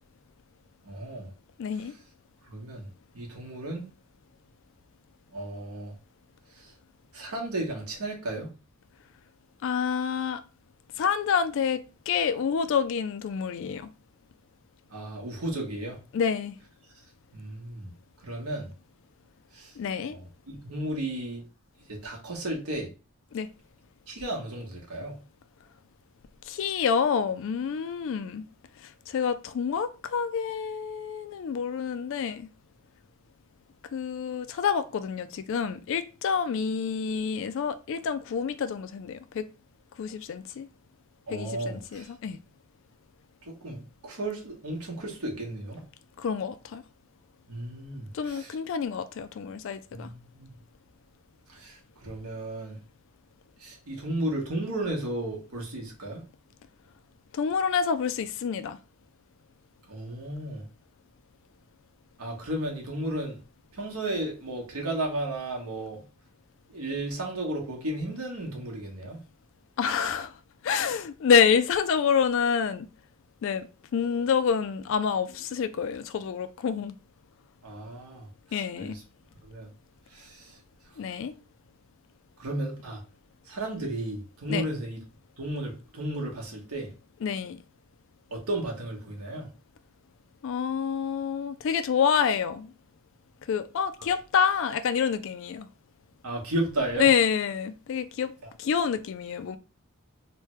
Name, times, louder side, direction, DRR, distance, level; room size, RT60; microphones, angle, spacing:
voice 1, 0.8-1.3 1.8-1.9 2.5-2.9 3.1-3.9 5.3-5.9 6.5-6.7 7.1-8.5 14.9-16.0 17.3-17.9 18.2-18.7 19.5-19.7 20.1-21.4 21.9-22.9 24.1-25.2 41.3-42.1 43.4-45.9 47.5-48.6 49.9-50.5 51.5-52.8 53.6-56.2 59.9-60.6 62.2-63.4 63.7-66.0 66.7-69.2 77.6-79.0 79.4-79.7 80.1-80.6 82.4-83.0 83.5-85.0 85.4-86.9 88.3-89.5 94.0-94.1 96.2-97.1 98.4-98.5, right 1 dB, 90° right, 1.1 m, -34 dB
voice 2, 1.6-1.9 9.6-10.4 11.0-13.9 16.1-16.6 19.8-20.2 23.3-23.5 26.5-28.4 29.1-32.5 33.9-39.5 40.0-40.7 41.3-42.4 46.2-46.8 48.1-50.1 57.3-58.8 69.8-70.3 70.6-72.9 73.4-73.7 73.9-76.9 78.5-79.0 81.0-81.4 84.5-84.6 87.2-87.6 90.4-92.7 93.5-95.7 97.0-98.3 98.6-99.6, left 7 dB, 60° left, 0.3 m, -27 dB
3.2 x 2.2 x 3.0 m
head